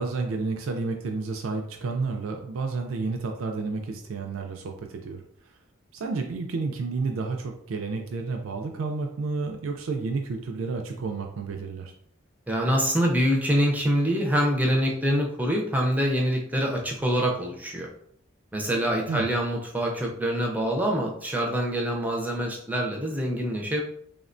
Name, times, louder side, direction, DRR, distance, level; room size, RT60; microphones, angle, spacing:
voice 1, 0.0-5.2 5.9-11.9 19.1-19.3, right 4 dB, 85° right, 3 dB, 0.4 m, -31 dB
voice 2, 12.5-17.9 18.5-23.8, equal, 10° right, 0 dB, 0.4 m, -25 dB
3.4 x 2.1 x 2.5 m, 0.67 s
head